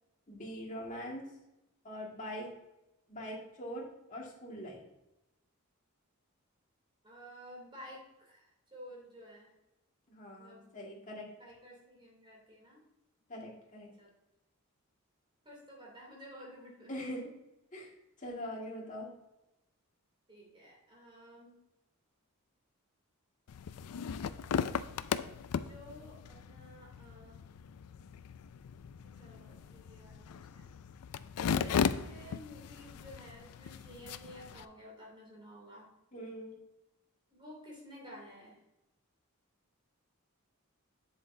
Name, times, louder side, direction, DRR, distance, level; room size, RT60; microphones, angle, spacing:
voice 1, 0.3-1.3 1.8-2.5 3.1-4.8 10.1-11.3 13.3-13.9 16.9-17.3 17.7-17.9 18.2-19.1 36.1-36.6, equal, 35° left, -2 dB, 1.9 m, -42 dB
voice 2, 7.0-9.5 10.4-10.7 11.4-12.8 14.0-14.1 15.4-16.9 20.3-21.6 25.5-27.4 29.0-30.7 31.4-35.9 37.3-38.6, equal, 20° right, -3 dB, 2.9 m, -52 dB
sound 1, 23.5-34.6, left 7 dB, 90° left, 0.4 m, -37 dB
7.8 x 7.8 x 2.7 m, 0.94 s
head